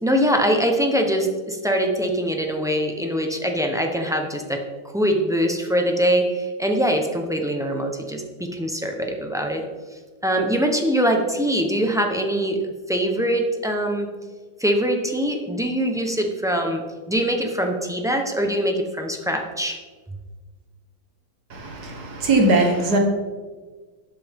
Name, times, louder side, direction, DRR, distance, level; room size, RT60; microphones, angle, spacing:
voice 1, 0.0-4.6 4.9-9.6 10.2-12.6 12.9-14.1 14.6-16.8 17.1-19.8, equal, 5° right, 2 dB, 0.5 m, -23 dB
voice 2, 21.5-23.0, right 2 dB, 60° right, 2 dB, 1.9 m, -20 dB
12.5 x 8.9 x 3.7 m, 1.4 s
omnidirectional pair, 2.0 m